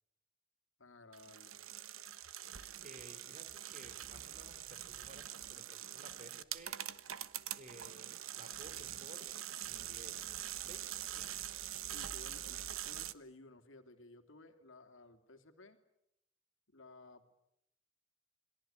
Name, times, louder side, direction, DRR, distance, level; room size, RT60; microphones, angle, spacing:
voice 1, 0.8-1.6 11.9-15.8 16.7-17.3, left 2 dB, 70° left, 7 dB, 3.0 m, -57 dB
sound 1, 1.1-13.1, right 11 dB, 90° right, 1.2 m, -44 dB
voice 2, 2.8-6.8 7.5-9.3 9.6-10.2 10.6-11.4, right 1 dB, 35° right, 9 dB, 4.2 m, -56 dB
29.0 x 22.5 x 9.0 m, 0.80 s
head